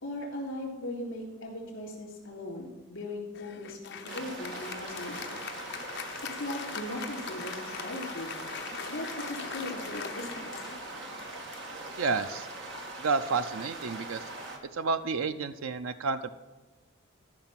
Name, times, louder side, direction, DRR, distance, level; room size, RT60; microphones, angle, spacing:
voice 1, 0.0-5.5 6.4-8.4 8.9-10.7, left 1 dB, 70° left, -1 dB, 3.6 m, -39 dB
Applause, 3.3-13.1, left 6 dB, 55° left, 0.9 m, -42 dB
sound 1, 4.1-14.6, right 2 dB, 60° right, 1.8 m, -41 dB
voice 2, 12.0-12.5 13.0-14.2 14.7-16.3, right 4 dB, 90° right, 10 dB, 0.5 m, -30 dB
13.5 x 6.0 x 5.8 m, 1.2 s
head